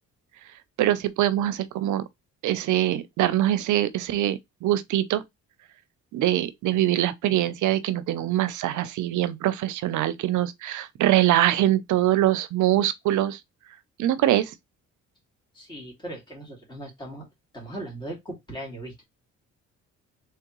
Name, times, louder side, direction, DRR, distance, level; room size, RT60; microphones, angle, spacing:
voice 1, 0.8-2.0 2.4-5.2 6.1-13.4 14.0-14.5, right 13 dB, 75° right, 0.6 m, -23 dB
voice 2, 15.5-17.3 17.5-19.0, right 1 dB, 15° left, 2.3 m, -38 dB
3.5 x 3.4 x 3.0 m
cardioid pair, 90°, 30 cm